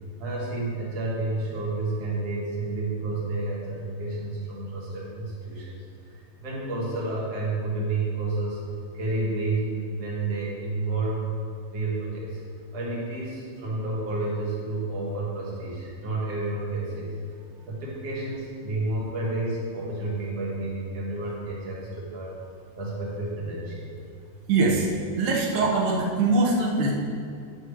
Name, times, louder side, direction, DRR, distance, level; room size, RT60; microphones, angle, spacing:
voice 1, 0.2-5.7 6.4-8.6 8.9-11.2 11.7-12.4 12.7-17.1 17.7-22.4 22.8-23.9, right 2 dB, 50° right, -5 dB, 2.2 m, -30 dB
voice 2, 24.5-24.9 25.2-26.9, right 3 dB, 65° right, -3 dB, 2.4 m, -22 dB
11.0 x 7.6 x 3.2 m, 2.3 s
omnidirectional pair, 4.6 m